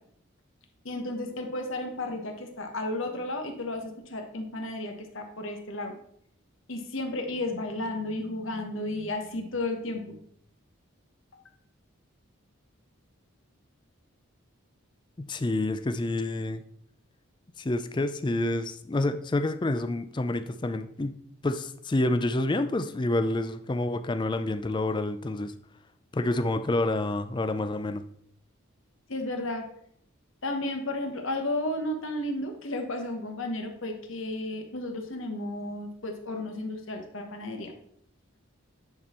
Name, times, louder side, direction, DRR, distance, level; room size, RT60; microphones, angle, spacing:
voice 1, 0.8-5.9 6.7-10.1 29.1-29.6 30.4-37.7, left 1 dB, 65° left, 4 dB, 1.2 m, -33 dB
voice 2, 15.2-16.6 17.6-21.2 21.4-25.5 26.1-28.0, left 2 dB, 20° left, 10 dB, 0.4 m, -28 dB
9.4 x 4.2 x 4.3 m, 0.66 s
head